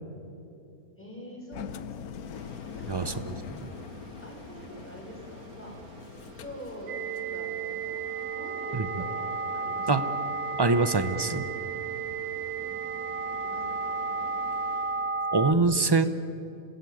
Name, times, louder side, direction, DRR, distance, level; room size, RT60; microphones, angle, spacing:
voice 1, 1.0-2.4 2.8-3.3 4.2-5.8 6.3-6.9 7.3-8.0 8.3-10.3 12.6-14.4, equal, 5° left, -1 dB, 6.3 m, -45 dB
Engine, 1.5-7.3, left 8 dB, 70° left, 1.3 m, -43 dB
sound 1, 2.3-15.3, right 2 dB, 65° right, 3.2 m, -49 dB
sound 2, 6.9-15.5, right 4 dB, 45° right, 1.1 m, -33 dB
voice 2, 10.6-11.4 15.3-16.0, right 3 dB, 20° right, 12 dB, 0.7 m, -23 dB
27.5 x 18.5 x 9.6 m, 2.7 s
omnidirectional pair, 1.7 m